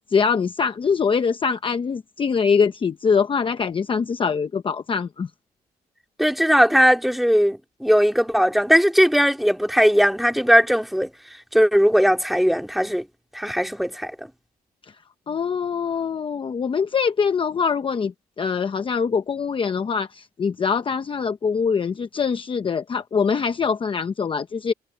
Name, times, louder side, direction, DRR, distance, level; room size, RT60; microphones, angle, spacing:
voice 1, 0.1-5.3 15.3-24.7, left 6 dB, 30° left, 0.8 m, -23 dB
voice 2, 6.2-11.1 11.5-13.0 13.3-14.3, equal, ahead, 2.6 m, -18 dB
cardioid pair, 130°, 17 cm